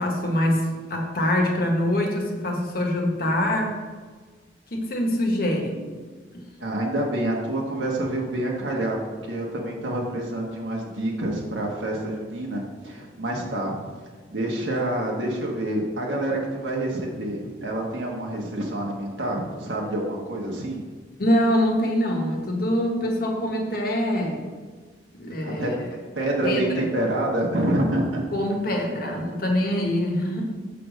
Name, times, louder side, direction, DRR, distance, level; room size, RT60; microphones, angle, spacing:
voice 1, 0.0-3.8 4.7-5.8 6.3-6.4 21.2-24.4 25.1-25.9 26.4-26.8 28.3-30.4, left 1 dB, 55° left, 1 dB, 1.2 m, -24 dB
voice 2, 6.6-9.0 9.2-13.7 14.3-20.8 25.4-25.7 26.1-28.2, right 1 dB, 90° right, -2 dB, 1.3 m, -27 dB
5.8 x 4.9 x 6.4 m, 1.4 s
head